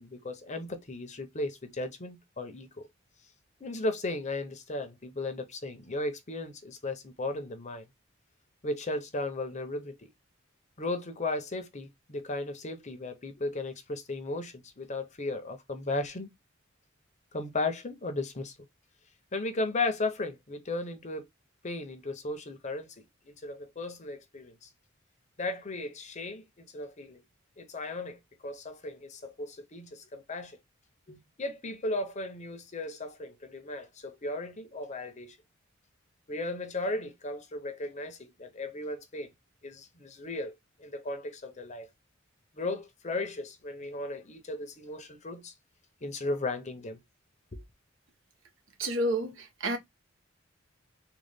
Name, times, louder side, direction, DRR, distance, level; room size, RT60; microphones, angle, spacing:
voice 1, 0.0-2.9 3.6-7.8 8.6-10.1 10.8-16.3 17.3-18.5 19.3-21.2 21.6-22.9 23.3-24.7 25.4-26.4 26.7-27.2 27.6-30.6 31.1-35.4 36.3-39.3 39.6-40.5 40.8-41.9 42.6-45.5 46.0-47.0 47.5-47.6, left 2 dB, 35° left, 0.8 m, -35 dB
voice 2, 48.8-49.8, right 1 dB, 75° right, 1.1 m, -30 dB
3.8 x 2.4 x 3.4 m
head